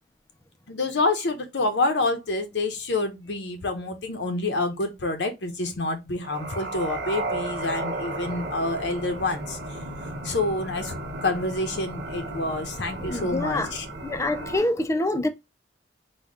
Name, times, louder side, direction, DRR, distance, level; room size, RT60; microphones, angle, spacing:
voice 1, 0.7-9.6 10.2-10.9 11.2-13.9, left 2 dB, 80° left, 0.8 m, -27 dB
sound 1, 6.2-14.6, right 2 dB, 65° right, 1.1 m, -34 dB
voice 2, 13.1-13.7 14.0-15.3, left 1 dB, 15° left, 0.5 m, -26 dB
4.1 x 2.3 x 4.7 m
head